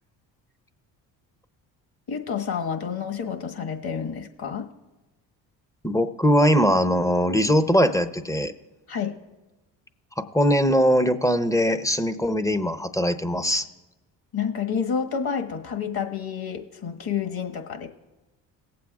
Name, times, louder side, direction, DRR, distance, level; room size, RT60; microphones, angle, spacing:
voice 1, 2.1-4.7 8.9-9.1 14.3-17.9, left 7 dB, 45° left, 4 dB, 1.5 m, -29 dB
voice 2, 5.8-8.5 10.2-13.6, equal, 5° left, 11 dB, 0.7 m, -21 dB
18.5 x 7.7 x 2.4 m, 1.1 s
hypercardioid pair, 50°, 50 cm